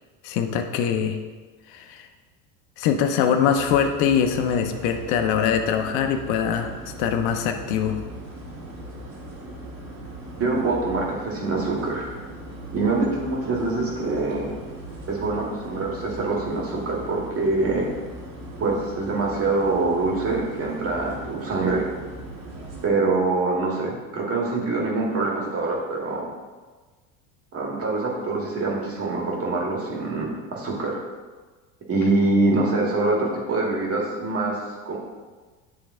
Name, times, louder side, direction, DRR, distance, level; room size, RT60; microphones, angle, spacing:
voice 1, 0.2-1.2 1.7-2.1 2.8-6.7 7.0-8.0, left 8 dB, 65° left, 5 dB, 0.8 m, -23 dB
sound 1, 3.6-22.9, right 1 dB, 75° right, 1.8 m, -39 dB
voice 2, 10.4-12.1 12.7-14.5 15.1-17.9 18.6-21.9 22.8-26.2 27.5-31.0 31.9-34.6 34.9-35.0, right 3 dB, 35° right, -2 dB, 2.0 m, -24 dB
9.6 x 3.5 x 3.7 m, 1.4 s
supercardioid pair, 105°, 40 cm